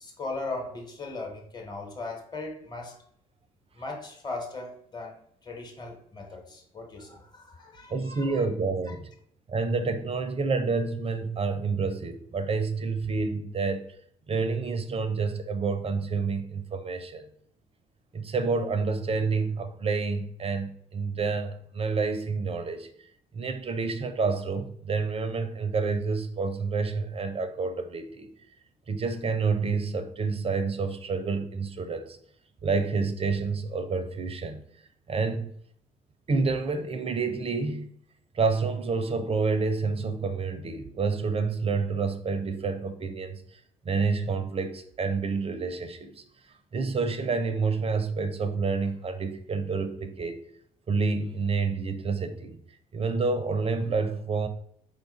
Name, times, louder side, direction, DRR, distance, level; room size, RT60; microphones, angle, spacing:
voice 1, 0.0-3.0 3.7-8.5, left 3 dB, 20° left, 1.2 m, -38 dB
voice 2, 7.9-9.1 9.5-13.9 14.3-17.3 18.1-22.9 23.3-28.3 28.9-32.2 32.6-34.6 35.1-35.5 36.3-37.9 38.3-43.6 43.8-46.2 46.7-50.4 50.9-52.6 52.9-54.5, right 4 dB, 30° right, 0.5 m, -28 dB
4.7 x 2.4 x 3.9 m
figure-of-eight pair, 50°, 19 cm